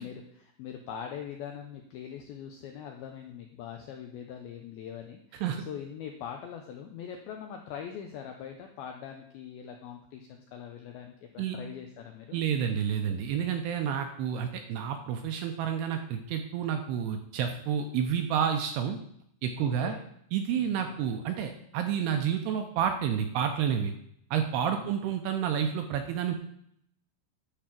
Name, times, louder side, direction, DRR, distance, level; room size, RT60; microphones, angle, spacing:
voice 1, 0.0-12.4 19.6-20.0 20.6-21.0 24.6-24.9, left 8 dB, 85° left, 3 dB, 2.2 m, -42 dB
voice 2, 5.3-5.6 11.4-11.6 12.3-19.0 19.4-19.9 20.3-23.9 24.3-26.3, right 8 dB, 80° right, 5 dB, 2.5 m, -29 dB
10.5 x 4.4 x 7.5 m, 0.69 s
omnidirectional pair, 5.4 m